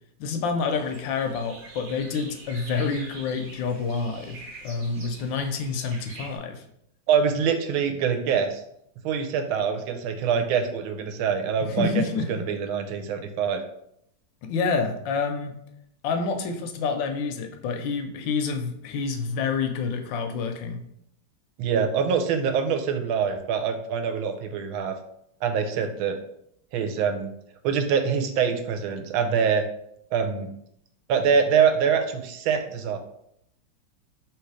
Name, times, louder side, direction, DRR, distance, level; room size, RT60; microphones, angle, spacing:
voice 1, 0.2-6.6 11.7-12.4 14.4-15.5 16.0-20.8, left 5 dB, 75° left, 6 dB, 1.2 m, -28 dB
sound 1, 0.7-6.4, right 3 dB, 50° right, 0.9 m, -45 dB
voice 2, 7.1-8.6 9.0-11.9 12.3-13.6 21.6-25.0 25.4-26.2 26.7-27.3 27.6-29.6 30.1-30.5 31.1-33.0, right 6 dB, 85° right, 6 dB, 1.4 m, -24 dB
3.2 x 3.1 x 4.7 m, 0.73 s
omnidirectional pair, 2.2 m